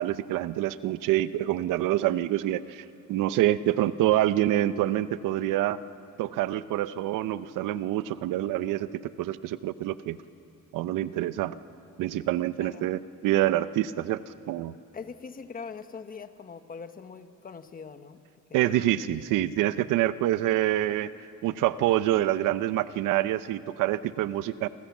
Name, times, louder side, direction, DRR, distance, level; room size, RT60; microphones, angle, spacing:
voice 1, 0.0-5.8 6.2-10.2 10.7-11.6 12.0-14.2 14.5-14.8 18.5-21.1 21.4-24.7, right 14 dB, 90° right, 14 dB, 0.8 m, -26 dB
voice 2, 12.6-12.9 14.9-18.8, left 5 dB, 30° left, 9 dB, 1.2 m, -42 dB
29.5 x 24.5 x 7.3 m, 2.7 s
cardioid pair, 150°, 31 cm